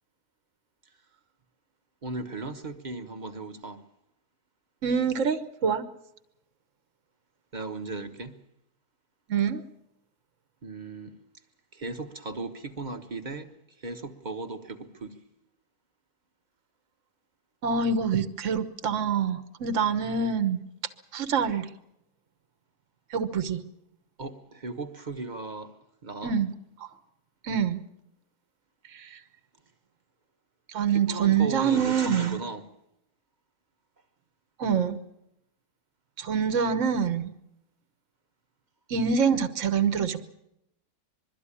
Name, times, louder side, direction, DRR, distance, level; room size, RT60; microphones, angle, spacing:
voice 1, 2.0-3.8 7.5-8.4 10.6-11.2 11.7-13.5 13.8-15.2 24.2-25.8 26.0-26.3 30.9-32.6, right 3 dB, 30° right, 1.2 m, -36 dB
voice 2, 4.8-5.8 9.3-9.6 17.6-20.6 21.1-21.7 23.1-23.6 26.2-26.5 27.4-27.8 28.9-29.2 30.7-32.4 34.6-35.0 36.2-37.3 38.9-40.2, right 6 dB, 50° right, 1.4 m, -25 dB
22.5 x 13.0 x 9.8 m
omnidirectional pair, 1.8 m